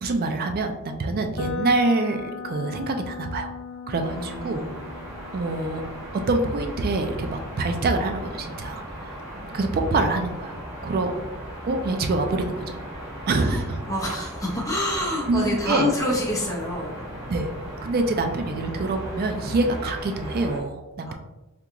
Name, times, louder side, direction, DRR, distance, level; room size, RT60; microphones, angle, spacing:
voice 1, 0.0-3.5 3.9-4.6 5.3-5.8 6.3-9.1 9.5-11.1 11.6-12.8 13.3-13.8 15.3-15.9 17.3-17.5 17.8-21.1, right 2 dB, 45° right, 5 dB, 0.4 m, -25 dB
sound 1, 1.3-9.3, left 4 dB, 60° left, 0.6 m, -39 dB
sound 2, 4.0-20.6, equal, 15° right, 1.0 m, -37 dB
voice 2, 4.1-4.7 13.4-17.0 21.0-21.1, left 1 dB, 15° left, -3 dB, 0.8 m, -27 dB
3.6 x 2.4 x 2.9 m, 1.0 s
head